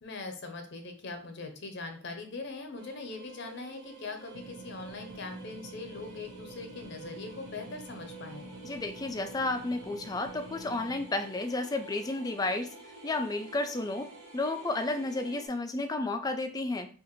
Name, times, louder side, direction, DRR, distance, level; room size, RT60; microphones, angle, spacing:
voice 1, 0.0-8.5, left 3 dB, 55° left, 5 dB, 0.7 m, -41 dB
sound 1, 2.8-15.5, right 2 dB, 65° right, 1.1 m, -49 dB
sound 2, 4.3-11.1, right 3 dB, 85° right, 0.7 m, -49 dB
voice 2, 8.6-12.7 13.0-14.1 14.3-16.9, left 2 dB, 20° left, 7 dB, 0.3 m, -32 dB
4.7 x 2.5 x 3.1 m, 0.41 s
head